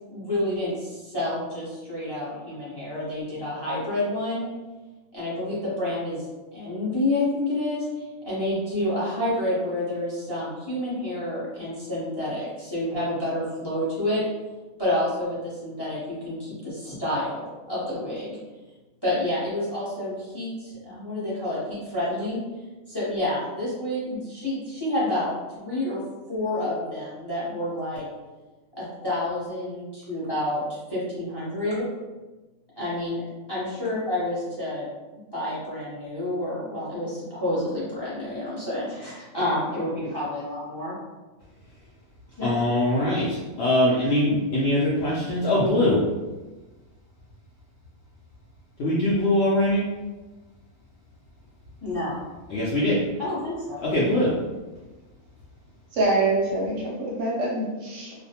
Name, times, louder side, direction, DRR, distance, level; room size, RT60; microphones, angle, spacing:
voice 1, 0.1-4.5 5.1-6.2 6.5-7.9 8.2-14.2 14.8-18.4 19.0-22.4 22.9-26.0 26.3-28.0 28.8-30.6 30.9-31.8 32.8-33.2 33.5-34.9 35.3-40.9 42.4-42.5 51.8-52.2 53.2-53.8, left 1 dB, 25° left, -9 dB, 0.5 m, -29 dB
voice 2, 42.4-46.0 48.8-49.8 52.5-53.0 53.8-54.3, left 1 dB, 70° left, -7 dB, 0.6 m, -22 dB
voice 3, 55.9-58.1, right 2 dB, 70° right, -4 dB, 0.8 m, -25 dB
2.4 x 2.1 x 2.8 m, 1.2 s
omnidirectional pair, 1.5 m